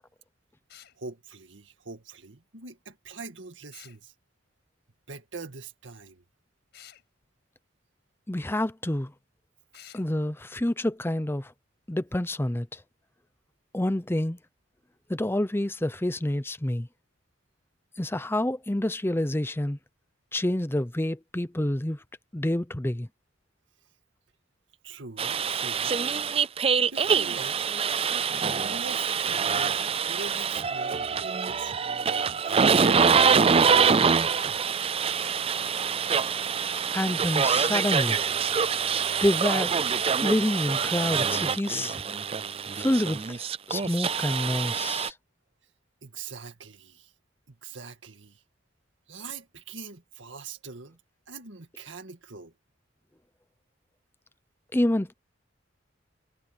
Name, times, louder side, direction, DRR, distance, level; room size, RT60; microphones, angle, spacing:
sound 1, 0.7-1.0 3.7-4.0 6.7-7.0 9.7-10.1, left 11 dB, 60° left, 5.2 m, -50 dB
voice 1, 1.0-4.1 5.1-6.2 24.8-26.0 26.8-27.6 28.6-29.8 30.1-31.7 32.4-34.0 46.0-47.1 47.5-48.4 49.1-51.0 51.3-52.5, right 4 dB, 75° right, 2.0 m, -43 dB
voice 2, 8.3-9.1 9.9-11.5 11.9-12.8 13.7-14.4 15.1-16.9 18.0-19.8 20.3-22.0 22.3-23.1 36.9-38.2 39.2-39.7 40.2-42.0 42.8-45.1 54.7-55.1, left 1 dB, 10° left, 0.7 m, -28 dB
sound 2, 25.2-45.1, right 6 dB, 30° right, 0.5 m, -25 dB
head